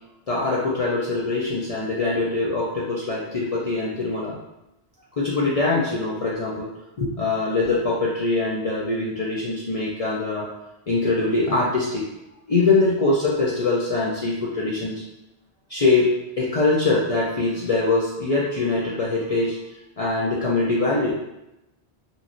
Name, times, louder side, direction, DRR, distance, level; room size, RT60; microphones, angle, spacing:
voice 1, 0.3-4.4 5.2-6.7 7.0-10.5 10.9-12.0 12.5-15.0 15.7-19.6 20.0-21.1, left 3 dB, 55° left, -6 dB, 0.4 m, -23 dB
2.9 x 2.6 x 2.5 m, 0.92 s
omnidirectional pair, 1.1 m